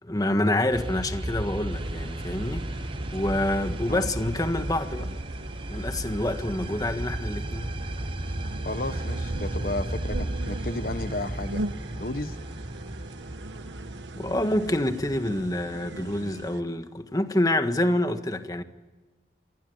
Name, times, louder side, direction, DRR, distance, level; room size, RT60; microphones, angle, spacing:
voice 1, 0.0-2.8 3.1-5.1 5.7-7.7 14.2-18.6, left 1 dB, 20° left, 1.6 m, -27 dB
sound 1, 0.7-16.4, right 1 dB, 30° right, 1.1 m, -34 dB
sound 2, 1.7-16.6, right 2 dB, 90° right, 1.1 m, -41 dB
voice 2, 8.6-11.6 11.9-12.4, left 2 dB, 55° left, 1.1 m, -33 dB
27.0 x 20.5 x 9.6 m
head